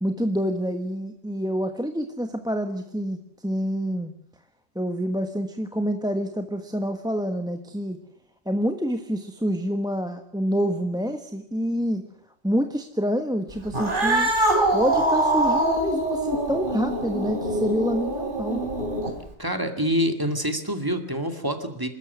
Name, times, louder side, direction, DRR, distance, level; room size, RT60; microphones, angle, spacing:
voice 1, 0.0-4.1 4.7-8.0 8.4-12.1 12.4-14.3 14.7-18.6, equal, 5° right, 6 dB, 1.2 m, -27 dB
Cat, 13.7-19.3, right 1 dB, 50° right, 4.1 m, -24 dB
voice 2, 19.4-21.9, equal, 20° right, 6 dB, 2.3 m, -26 dB
26.5 x 13.5 x 9.4 m, 0.70 s
omnidirectional pair, 1.1 m